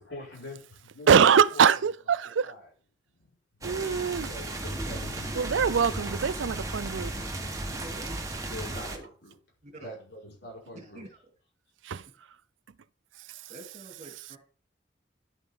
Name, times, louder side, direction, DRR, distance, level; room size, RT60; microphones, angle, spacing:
voice 1, 0.0-1.1 1.5-1.6 2.4-2.6 3.2-3.3 3.6-3.8 4.3-5.7 8.4-8.9 9.2-9.3 9.8-11.0, left 1 dB, 60° left, 5.5 m, -44 dB
voice 2, 1.1-2.5 3.6-4.3 5.3-7.1 11.8-12.3 13.2-13.5, right 7 dB, 80° right, 0.4 m, -24 dB
sound 1, 3.6-9.0, right 2 dB, 15° right, 1.4 m, -35 dB
voice 3, 7.6-8.2 8.6-9.1 9.6-9.9 10.7-11.2 13.5-14.4, right 1 dB, 40° right, 3.1 m, -46 dB
11.0 x 8.4 x 3.8 m
head